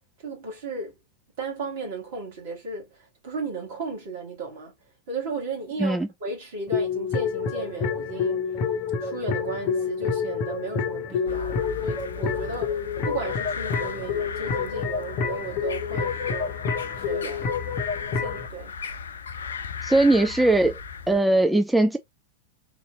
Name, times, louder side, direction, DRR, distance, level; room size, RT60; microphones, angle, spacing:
voice 1, 0.2-1.0 1.4-4.7 5.1-8.5 9.0-16.5 17.1-17.5 18.2-18.7, right 3 dB, 55° right, 1.9 m, -35 dB
sound 1, 6.7-18.5, left 5 dB, 40° left, 0.9 m, -28 dB
sound 2, 11.3-21.2, left 6 dB, 70° left, 0.4 m, -36 dB
voice 2, 19.8-20.8 21.1-22.0, right 2 dB, 5° right, 0.4 m, -20 dB
3.9 x 2.8 x 2.4 m
figure-of-eight pair, 90°, 0 cm